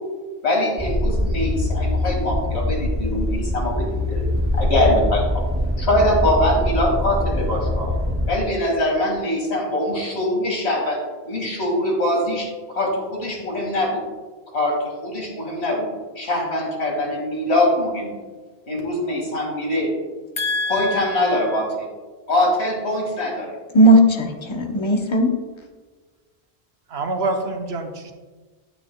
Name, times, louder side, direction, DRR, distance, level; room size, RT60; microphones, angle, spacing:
voice 1, 0.4-4.2 4.5-5.4 5.8-7.9 8.3-14.0 14.5-15.9 16.2-18.1 18.7-19.9 20.7-21.9 22.3-23.5, left 1 dB, 85° left, -1 dB, 2.4 m, -23 dB
sound 1, 0.8-8.3, left 1 dB, 15° right, 0.7 m, -23 dB
voice 2, 20.4-21.1 23.7-25.3, right 1 dB, 30° left, 3 dB, 0.9 m, -17 dB
voice 3, 26.9-28.1, right 2 dB, 75° right, 4 dB, 1.1 m, -26 dB
9.3 x 9.2 x 2.3 m, 1.3 s
omnidirectional pair, 1.1 m